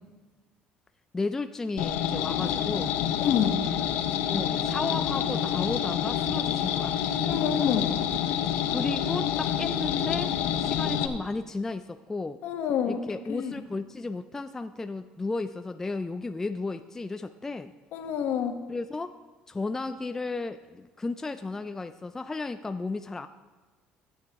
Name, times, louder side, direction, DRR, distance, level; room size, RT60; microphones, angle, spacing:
voice 1, 1.1-3.0 4.3-7.0 8.7-10.3 10.6-12.4 12.9-17.7 18.7-19.2 19.5-23.3, left 3 dB, 15° left, 9 dB, 0.3 m, -34 dB
sound 1, 1.8-11.1, left 9 dB, 85° left, 0.7 m, -28 dB
voice 2, 3.2-3.6 7.3-8.0 12.4-13.0 13.3-13.5 17.9-18.6, left 8 dB, 65° left, 6 dB, 1.1 m, -27 dB
14.5 x 8.8 x 3.5 m, 1.2 s
cardioid pair, 130°, 3 cm